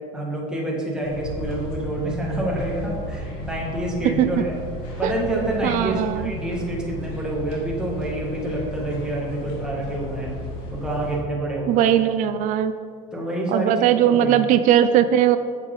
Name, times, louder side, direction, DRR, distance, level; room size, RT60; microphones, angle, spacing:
voice 1, 0.1-4.5 5.0-10.3 10.7-11.9 13.1-13.7 14.1-14.4, right 1 dB, 5° right, -4 dB, 1.8 m, -27 dB
sound 1, 1.0-11.2, equal, 80° left, 1.9 m, -34 dB
voice 2, 5.6-6.3 11.7-12.7 13.5-15.4, right 10 dB, 50° right, 10 dB, 0.4 m, -19 dB
8.0 x 7.3 x 3.9 m, 2.2 s
cardioid pair, 130°, 17 cm